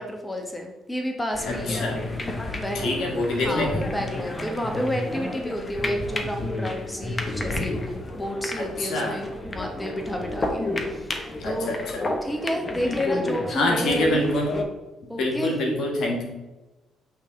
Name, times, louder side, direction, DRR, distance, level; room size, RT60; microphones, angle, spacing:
voice 1, 0.0-1.9 2.5-2.9 3.4-11.8 12.2-14.2 15.1-15.5, equal, 10° left, 2 dB, 1.3 m, -31 dB
sound 1, 1.3-14.6, left 2 dB, 30° left, 1.1 m, -31 dB
voice 2, 1.4-2.0 2.7-3.8 8.6-9.2 11.4-12.0 13.5-14.5 15.2-16.2, left 1 dB, 70° left, 0 dB, 1.5 m, -25 dB
8.1 x 3.4 x 3.9 m, 1.1 s
hypercardioid pair, 55°, 0 cm